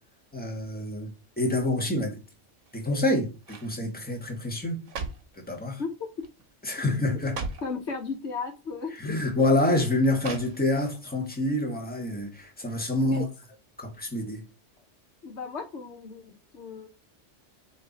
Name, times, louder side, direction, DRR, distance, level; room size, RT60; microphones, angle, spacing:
voice 1, 0.3-2.2 2.7-4.8 5.3-5.8 6.6-7.4 9.0-13.3 13.8-14.4, left 1 dB, 10° left, 1.6 m, -27 dB
sound 1, 2.6-3.0 3.4-3.8 4.6-5.4 6.2-6.4 6.7-6.8 7.2-7.8 8.7-8.8 10.2-10.9 11.3-11.4, right 4 dB, 85° right, 1.4 m, -38 dB
voice 2, 7.6-8.9 9.2-9.3 13.0-13.3 15.2-16.9, left 4 dB, 70° left, 1.3 m, -35 dB
8.0 x 3.2 x 4.1 m
omnidirectional pair, 1.2 m